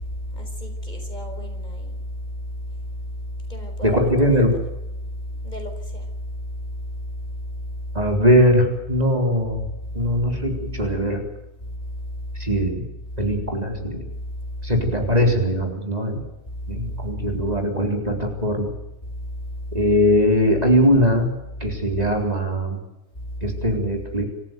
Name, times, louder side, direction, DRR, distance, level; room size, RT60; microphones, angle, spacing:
voice 1, 0.0-4.6 5.0-8.2 9.7-10.9 11.6-12.6 13.1-13.4 14.1-14.7 16.5-17.4 19.0-19.9 21.6-21.8 23.1-23.6, equal, 30° left, 4 dB, 4.9 m, -32 dB
voice 2, 3.8-4.6 7.9-9.7 9.9-11.2 12.4-12.8 13.2-14.1 14.6-16.2 16.7-18.7 19.7-21.3 21.6-22.8 23.4-24.3, equal, 30° right, 2 dB, 4.1 m, -20 dB
27.0 x 15.0 x 9.2 m, 0.94 s
omnidirectional pair, 1.4 m